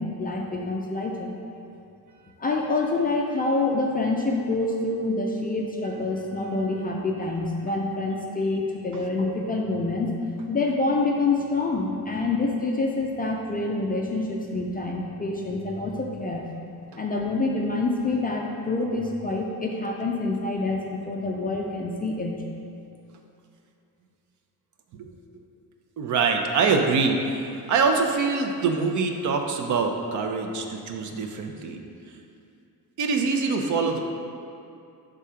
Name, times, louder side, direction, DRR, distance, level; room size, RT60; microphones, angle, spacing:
voice 1, 0.0-1.3 2.4-10.1 10.5-16.5 17.0-22.4, left 3 dB, 25° left, 0 dB, 0.3 m, -27 dB
voice 2, 26.0-31.8 33.0-34.0, right 4 dB, 50° right, 4 dB, 0.6 m, -24 dB
6.3 x 3.7 x 5.6 m, 2.6 s
cardioid pair, 155°, 38 cm